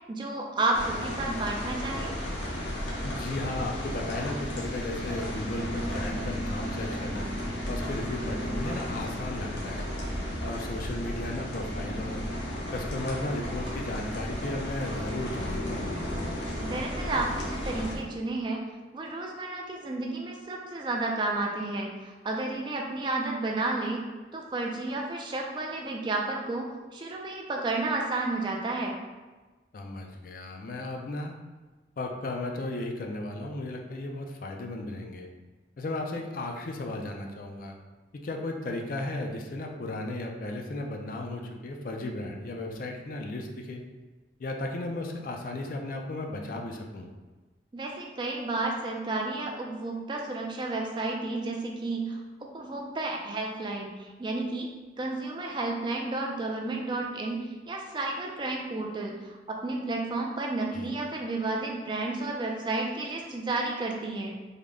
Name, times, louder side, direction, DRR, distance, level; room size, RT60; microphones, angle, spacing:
voice 1, 0.1-2.1 16.6-18.6 18.9-24.0 24.3-28.9 47.7-54.7 55.0-64.3, right 2 dB, 25° right, 0 dB, 0.3 m, -32 dB
sound 1, 0.7-18.0, equal, 80° left, 0.8 m, -34 dB
voice 2, 3.0-7.3 7.7-9.9 10.4-12.2 12.7-15.9 29.7-31.3 32.0-35.3 35.8-37.8 38.2-43.8 44.4-47.1 60.7-60.9, left 2 dB, 50° left, 2 dB, 0.4 m, -35 dB
3.6 x 2.1 x 3.4 m, 1.3 s
head